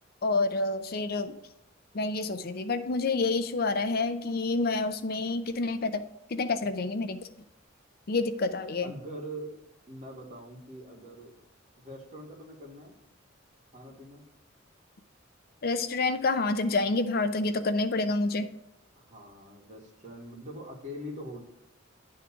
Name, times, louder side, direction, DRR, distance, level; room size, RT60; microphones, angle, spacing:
voice 1, 0.2-1.3 1.9-6.0 6.3-7.2 8.1-8.9 15.6-18.5, left 3 dB, 50° left, 10 dB, 0.5 m, -28 dB
voice 2, 8.8-11.4 11.8-13.0 13.7-14.2 18.9-21.4, equal, 40° right, -2 dB, 2.1 m, -43 dB
10.5 x 3.7 x 5.7 m, 0.89 s
head